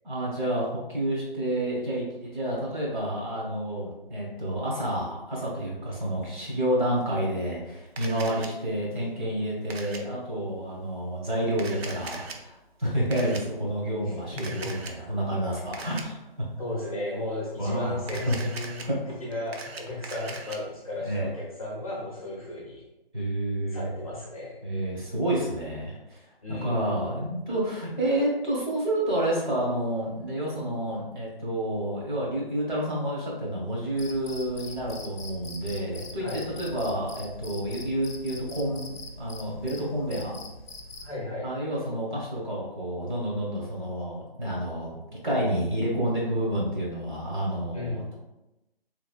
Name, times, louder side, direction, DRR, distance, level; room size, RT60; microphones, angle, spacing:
voice 1, 0.0-16.2 17.6-18.4 18.9-19.0 21.0-21.3 23.1-24.0 24.6-26.2 26.5-40.4 41.4-45.0 45.2-48.1, right 1 dB, 50° right, -4 dB, 1.2 m, -29 dB
Camera, 8.0-8.5 9.7-10.0 11.5-12.4 13.1-13.4 14.4-14.9 15.7-16.0 18.0-18.8 19.3-20.6, right 4 dB, 85° right, 0.5 m, -39 dB
voice 2, 8.1-8.4 14.0-14.7 16.6-18.9 19.2-22.8 23.7-24.6 26.4-26.9 36.2-36.5 41.0-41.5 47.7-48.1, left 1 dB, 35° left, -4 dB, 0.7 m, -35 dB
Cricket, 34.0-41.1, left 2 dB, 75° left, 0.6 m, -43 dB
3.2 x 2.3 x 2.4 m, 0.95 s
hypercardioid pair, 175°, 30 cm